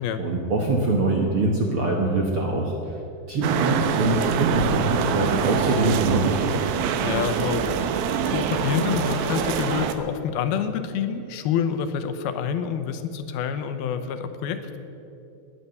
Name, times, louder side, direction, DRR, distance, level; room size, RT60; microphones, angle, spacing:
voice 1, 0.0-3.0 3.3-6.7, right 2 dB, 60° right, 0 dB, 1.5 m, -23 dB
sound 1, 3.4-9.9, right 7 dB, 80° right, 2.7 m, -25 dB
voice 2, 7.0-14.8, left 7 dB, 85° left, 9 dB, 2.8 m, -27 dB
20.0 x 9.5 x 6.9 m, 2.8 s
omnidirectional pair, 4.3 m